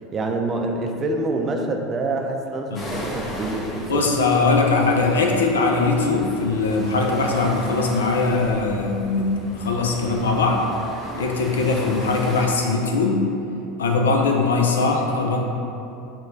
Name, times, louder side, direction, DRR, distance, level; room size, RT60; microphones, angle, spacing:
voice 1, 0.1-4.1, right 2 dB, 30° right, 3 dB, 0.4 m, -26 dB
sound 1, 2.7-12.4, equal, 25° left, 0.8 m, -36 dB
voice 2, 3.9-10.7 11.2-13.2 13.8-15.4, left 3 dB, 85° left, 1 dB, 0.4 m, -21 dB
5.9 x 2.2 x 2.7 m, 2.8 s
hypercardioid pair, 85°, 0 cm